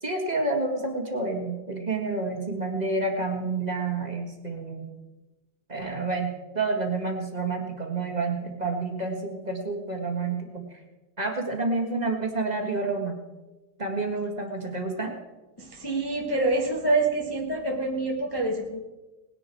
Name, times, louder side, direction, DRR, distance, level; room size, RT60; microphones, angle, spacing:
voice 1, 0.0-5.0 5.7-10.8 11.2-13.2 13.8-15.2, right 3 dB, 20° right, 2 dB, 1.8 m, -29 dB
voice 2, 15.6-18.8, right 2 dB, 15° left, -1 dB, 0.9 m, -26 dB
19.5 x 10.0 x 4.6 m, 1.1 s
omnidirectional pair, 2.1 m